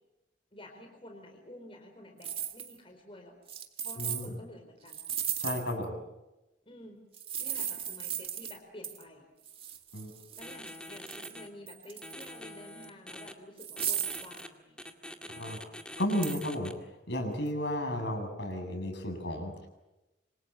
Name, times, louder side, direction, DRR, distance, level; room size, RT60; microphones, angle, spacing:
voice 1, 0.5-3.4 3.8-5.0 6.7-7.0 7.4-9.3 10.3-14.8, left 1 dB, 30° left, 3 dB, 4.2 m, -50 dB
sound 1, 2.2-2.8 3.5-4.3 4.9-5.8 7.1-8.6 8.8-9.0 9.5-11.4 11.7-12.4 12.8-12.9 13.6-14.4 16.2-16.4, right 9 dB, 30° right, 2.1 m, -36 dB
voice 2, 4.0-4.3 5.4-5.9 9.9-10.1 15.3-15.6 16.0-16.7 17.1-19.7, left 1 dB, 65° left, 5 dB, 7.3 m, -33 dB
sound 2, 10.4-11.5 12.0-13.3 13.8-14.5 14.8-16.7, left 1 dB, 5° left, 2.1 m, -45 dB
27.0 x 26.0 x 7.6 m, 1.0 s
head